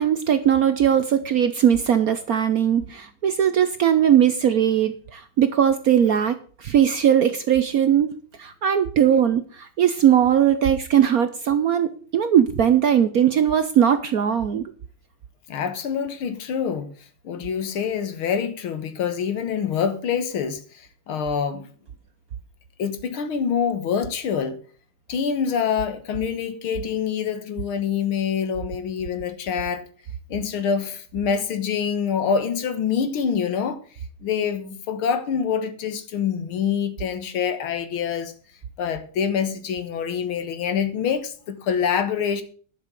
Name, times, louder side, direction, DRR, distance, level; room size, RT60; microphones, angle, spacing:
voice 1, 0.0-8.1 8.4-14.7, right 9 dB, 65° right, 0.9 m, -19 dB
voice 2, 15.5-16.9 17.2-21.7 22.8-24.6 25.1-29.8 30.3-33.8 34.2-38.3 38.8-42.4, left 7 dB, 85° left, 2.2 m, -26 dB
11.5 x 6.6 x 6.8 m
omnidirectional pair, 2.3 m